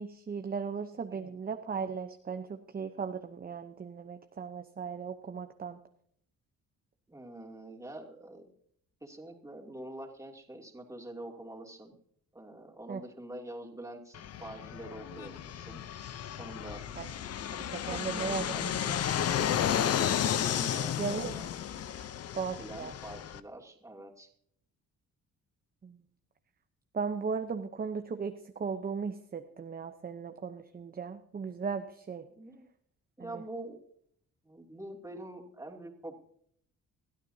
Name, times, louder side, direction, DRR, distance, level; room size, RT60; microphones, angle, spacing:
voice 1, 0.0-5.8 12.9-13.0 17.0-17.1 17.7-19.0 21.0-21.4 22.3-22.9 25.8-26.0 26.9-28.3 28.6-32.2 33.2-33.4, right 5 dB, 30° right, 7 dB, 0.8 m, -37 dB
voice 2, 7.1-8.5 9.0-12.0 12.3-15.8 16.4-16.8 17.8-18.9 20.4-21.5 22.6-24.3 32.3-32.7 33.2-33.8 34.4-36.2, right 1 dB, 10° right, 0 dB, 2.8 m, -45 dB
Fixed-wing aircraft airplane, 14.1-23.4, left 9 dB, 55° left, 0.8 m, -33 dB
21.0 x 13.0 x 2.8 m, 0.67 s
cardioid pair, 90°, 30 cm